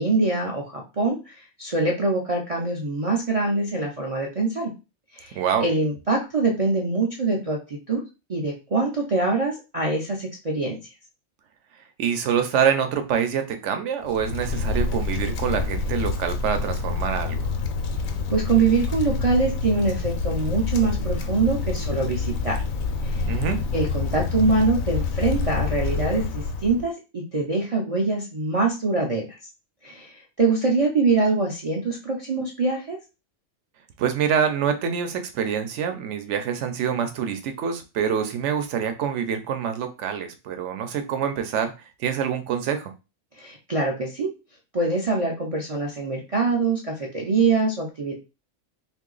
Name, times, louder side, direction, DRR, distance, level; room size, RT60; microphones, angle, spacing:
voice 1, 0.0-1.3 1.6-4.7 5.1-8.0 8.3-10.8 18.3-22.6 23.0-23.2 23.7-29.3 29.8-33.0 43.4-44.3 44.7-48.1, right 3 dB, 50° right, -2 dB, 0.4 m, -24 dB
voice 2, 5.3-5.6 12.0-17.5 23.3-23.6 34.0-41.7 42.0-42.9, right 7 dB, 65° right, 8 dB, 0.9 m, -25 dB
Wind, 14.0-26.9, left 4 dB, 85° left, 1.0 m, -27 dB
2.8 x 2.6 x 3.8 m, 0.29 s
omnidirectional pair, 1.4 m